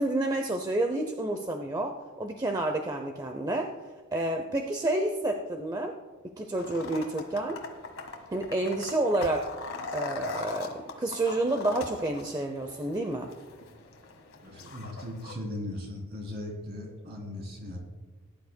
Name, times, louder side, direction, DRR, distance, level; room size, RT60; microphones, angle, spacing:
voice 1, 0.0-3.7 4.1-5.9 6.4-7.6 8.3-9.5 9.9-13.3, right 2 dB, 20° right, 4 dB, 0.6 m, -29 dB
sound 1, 6.6-15.3, left 3 dB, 70° left, 1.6 m, -41 dB
voice 2, 14.4-17.8, left 1 dB, 45° right, -1 dB, 3.2 m, -38 dB
19.5 x 11.0 x 2.2 m, 1.3 s
head